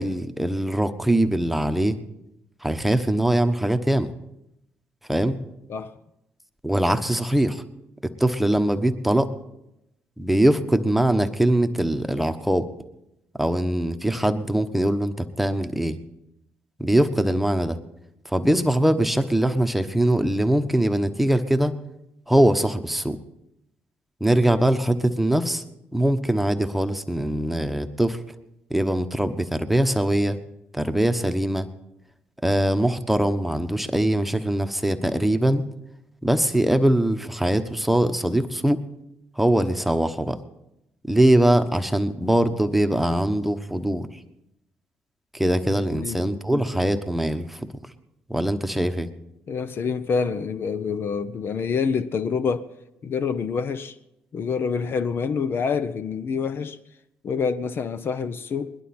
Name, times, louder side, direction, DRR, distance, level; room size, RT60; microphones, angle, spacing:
voice 1, 0.0-2.0 2.6-4.1 5.1-5.3 6.6-7.6 8.0-9.3 10.2-12.7 13.4-16.0 16.8-17.8 18.2-21.8 22.3-23.2 24.2-25.6 25.9-28.2 28.7-30.4 30.7-31.7 32.4-35.7 36.2-38.8 39.4-40.4 41.1-44.1 45.3-47.6 48.3-49.1, right 1 dB, 5° right, 1.1 m, -22 dB
voice 2, 45.7-46.2 49.5-52.7 53.0-54.0 54.3-56.8 57.2-58.7, left 5 dB, 55° left, 0.7 m, -27 dB
21.0 x 11.5 x 4.3 m
supercardioid pair, 65°, 5 cm